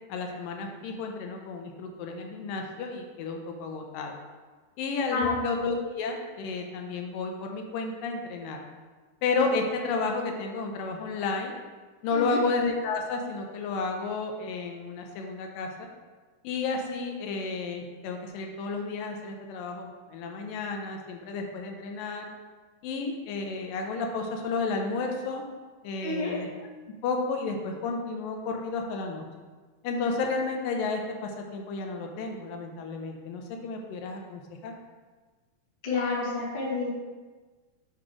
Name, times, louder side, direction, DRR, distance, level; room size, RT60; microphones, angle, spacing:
voice 1, 0.1-4.1 4.8-8.6 9.2-11.5 12.0-15.9 16.4-22.3 22.8-25.5 25.8-26.5 27.0-29.3 29.8-34.7, left 4 dB, 80° left, 2 dB, 2.3 m, -32 dB
voice 2, 5.1-5.4 12.1-12.4 26.0-26.4 35.8-36.9, left 3 dB, 35° left, -7 dB, 0.9 m, -29 dB
8.4 x 3.1 x 4.9 m, 1.3 s
omnidirectional pair, 4.0 m